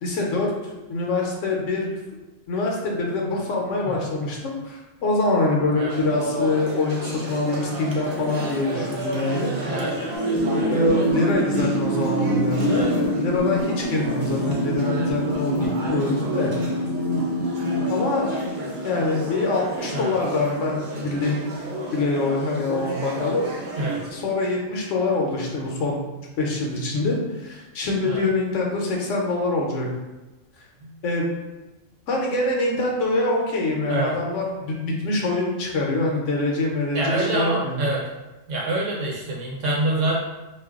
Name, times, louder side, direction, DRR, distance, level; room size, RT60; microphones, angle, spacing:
voice 1, 0.0-1.9 2.5-9.5 10.7-16.5 17.9-18.3 18.8-21.4 21.9-23.5 24.1-26.0 26.4-29.9 31.0-31.3 32.1-37.8, left 2 dB, 75° left, -1 dB, 1.0 m, -24 dB
sound 1, 5.9-24.1, right 1 dB, 55° right, 0.5 m, -33 dB
voice 2, 9.6-9.9 12.7-12.9 19.9-20.1 23.8-24.0 28.0-28.2 30.8-30.9 33.9-34.1 36.9-38.0 38.5-40.2, right 2 dB, 75° right, -3 dB, 0.9 m, -26 dB
sound 2, 10.1-19.2, equal, 40° left, 0.7 m, -25 dB
2.5 x 2.3 x 3.5 m, 1.1 s
omnidirectional pair, 1.3 m